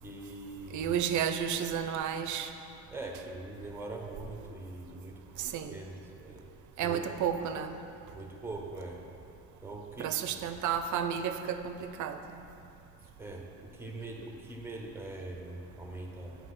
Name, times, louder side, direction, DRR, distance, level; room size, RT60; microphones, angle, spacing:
voice 1, 0.0-0.9 2.9-5.2 5.7-6.4 6.8-7.0 8.1-9.0 9.6-10.4 13.2-16.4, right 2 dB, 5° right, 1 dB, 0.7 m, -42 dB
voice 2, 0.7-2.5 5.4-5.8 6.8-7.8 10.0-11.7 12.0-12.2, right 8 dB, 55° right, 9 dB, 0.5 m, -31 dB
7.6 x 2.8 x 5.8 m, 2.7 s
cardioid pair, 100°, 37 cm